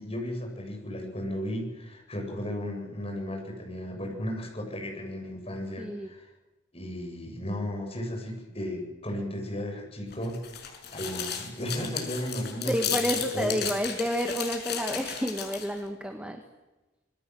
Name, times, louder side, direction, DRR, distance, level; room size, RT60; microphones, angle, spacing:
voice 1, 0.0-6.3 6.7-13.1 13.3-13.7, equal, 30° left, 1 dB, 7.8 m, -35 dB
voice 2, 5.8-6.1 12.7-16.4, equal, 5° right, 4 dB, 1.8 m, -30 dB
sound 1, 10.1-15.8, left 8 dB, 55° left, 6.2 m, -34 dB
27.5 x 21.5 x 7.9 m, 1.1 s
head